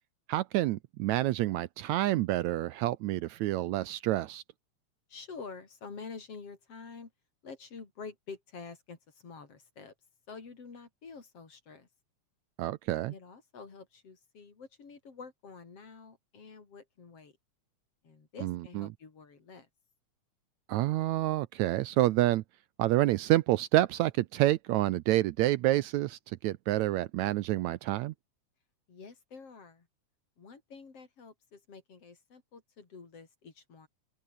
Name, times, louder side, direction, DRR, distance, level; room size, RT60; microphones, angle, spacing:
voice 1, 0.3-4.4 12.6-13.1 18.4-18.9 20.7-22.4 22.8-28.1, right 16 dB, 75° right, 1.8 m, -28 dB
voice 2, 5.1-7.1 7.4-9.9 10.3-11.9 13.1-17.4 18.0-19.7 28.9-29.9 30.4-33.9, left 5 dB, 50° left, 4.6 m, -48 dB
open air
omnidirectional pair, 3.6 m